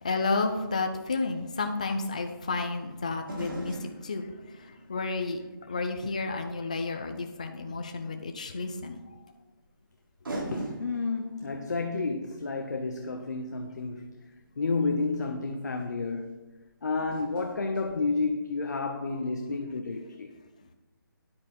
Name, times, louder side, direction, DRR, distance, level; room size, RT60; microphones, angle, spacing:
voice 1, 0.0-3.8 4.0-4.3 4.5-5.4 5.7-9.2, left 3 dB, 20° left, 0.4 m, -31 dB
sound 1, 3.3-6.2 6.6-6.7 8.3-8.4 9.6-9.7 10.2-14.3 15.3-15.4 15.7-15.9 16.9-18.9 19.1-19.2, right 1 dB, 70° right, 3.1 m, -42 dB
voice 2, 10.5-14.2 14.6-16.4 16.8-20.3, left 3 dB, 50° left, 0.9 m, -31 dB
9.8 x 8.3 x 4.3 m
hypercardioid pair, 175°, 12 cm